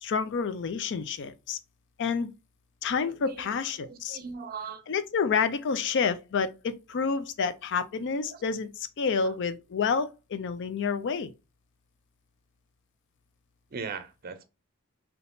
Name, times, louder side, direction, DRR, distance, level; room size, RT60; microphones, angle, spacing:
voice 1, 0.0-1.6 2.0-2.3 2.8-4.2 4.9-11.3, left 5 dB, 55° left, 0.4 m, -29 dB
voice 2, 3.0-3.5 3.8-4.8 8.3-8.4 9.2-9.3 13.7-14.4, right 5 dB, 45° right, 0.5 m, -39 dB
3.5 x 2.8 x 2.6 m
head